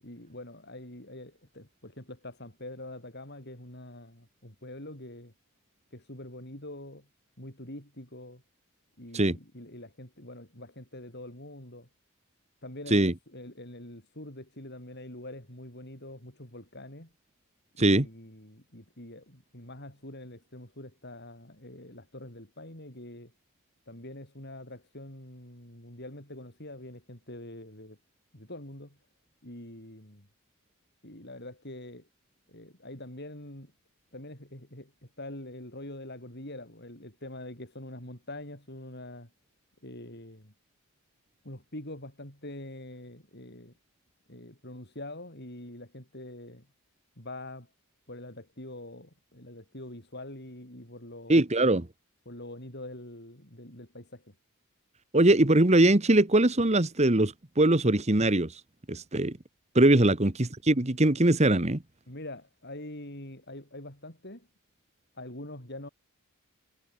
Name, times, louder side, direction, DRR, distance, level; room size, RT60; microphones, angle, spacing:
voice 1, 0.0-5.3 5.9-7.1 7.4-8.4 9.0-11.9 12.6-17.1 17.8-23.3 23.9-28.0 28.3-29.0 29.4-30.3 31.0-32.1 32.5-33.7 34.1-34.9 35.2-39.3 39.8-40.5 41.4-43.7 44.3-46.7 47.2-47.7 48.1-51.4 52.3-54.3 60.0-60.1 62.1-64.5 65.2-65.9, left 1 dB, 50° left, 7.6 m, -44 dB
voice 2, 51.3-51.9 55.1-58.5 58.9-59.4 59.7-61.8, right 1 dB, 30° right, 1.4 m, -22 dB
head